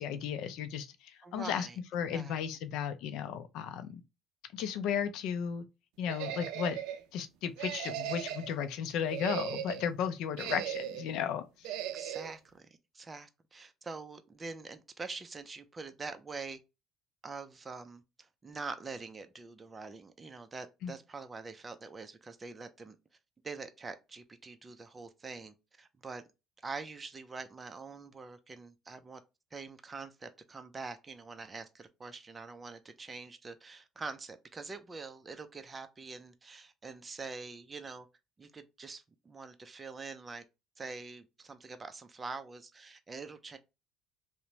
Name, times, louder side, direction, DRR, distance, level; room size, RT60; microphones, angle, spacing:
voice 1, 0.0-1.7 1.9-4.0 4.5-5.6 6.0-6.8 7.1-11.8 20.8-20.9, left 8 dB, 80° left, 0.4 m, -35 dB
voice 2, 1.2-1.8 2.1-2.3 11.9-12.7 12.9-16.6 17.2-23.0 23.4-26.2 26.6-29.2 29.5-38.1 38.4-40.4 40.8-43.6, right 4 dB, 25° right, 0.4 m, -45 dB
sound 1, 6.1-7.0 7.6-8.5 9.0-9.9 10.3-11.1 11.6-12.3, right 10 dB, 85° right, 0.4 m, -37 dB
2.9 x 2.1 x 2.6 m
supercardioid pair, 90°, 0 cm